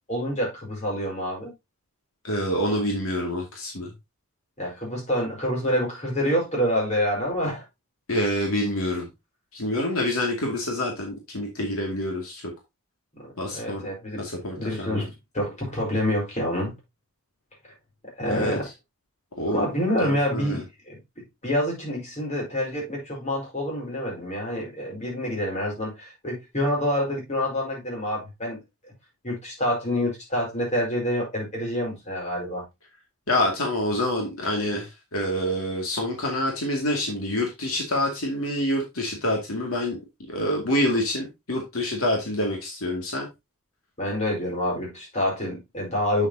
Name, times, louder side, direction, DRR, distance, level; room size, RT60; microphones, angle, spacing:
voice 1, 0.1-1.5 4.6-7.6 13.2-14.2 14.5-16.7 18.0-18.7 19.5-28.6 29.2-32.6 44.0-46.3, equal, 30° left, 5.0 m, -27 dB
voice 2, 2.2-3.9 8.1-9.1 9.5-12.5 13.4-13.9 14.2-15.1 18.3-18.6 19.4-19.6 20.3-20.6 33.3-40.0 40.3-43.3, left 1 dB, 75° left, 2.4 m, -27 dB
8.9 x 6.7 x 2.8 m
head